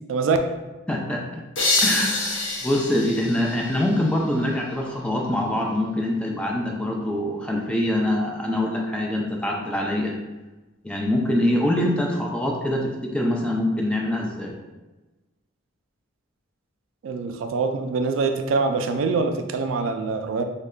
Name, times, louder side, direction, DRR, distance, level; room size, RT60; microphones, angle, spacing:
voice 1, 0.9-1.4 1.8-10.2 10.8-14.5, left 1 dB, 5° left, -1 dB, 0.3 m, -24 dB
sound 1, 1.6-4.3, left 2 dB, 70° left, 0.6 m, -26 dB
voice 2, 17.0-20.4, right 4 dB, 85° right, 6 dB, 0.3 m, -24 dB
3.1 x 2.2 x 3.7 m, 1.1 s
head